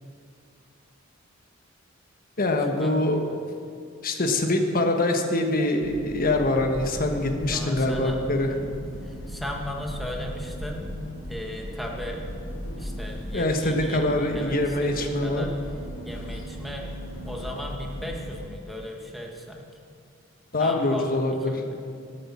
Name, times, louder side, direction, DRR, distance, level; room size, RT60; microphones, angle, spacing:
voice 1, 2.4-3.3 4.0-8.5 13.3-15.5 20.5-21.5, left 2 dB, 45° left, 4 dB, 1.3 m, -24 dB
sound 1, 5.8-18.4, equal, 70° left, 1.8 m, -37 dB
voice 2, 7.5-8.5 9.0-10.9 11.3-12.3 12.8-15.5 16.0-19.6 20.5-21.8, equal, ahead, 0 dB, 1.5 m, -37 dB
13.0 x 8.6 x 7.3 m, 2.4 s
head